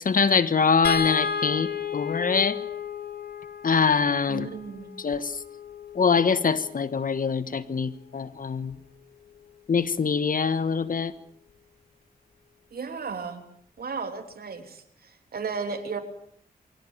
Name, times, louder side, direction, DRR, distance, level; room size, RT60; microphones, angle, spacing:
voice 1, 0.0-2.6 3.6-4.5 5.0-5.4 5.9-8.8 9.7-11.1, left 5 dB, 60° left, 14 dB, 1.4 m, -24 dB
sound 1, 0.8-7.2 8.7-8.9 9.2-9.4, left 7 dB, 85° left, 2.4 m, -33 dB
voice 2, 4.3-4.9 12.7-13.4 13.8-16.0, right 5 dB, 70° right, 7 dB, 3.4 m, -34 dB
23.5 x 17.5 x 9.1 m, 0.67 s
cardioid pair, 60°, 16 cm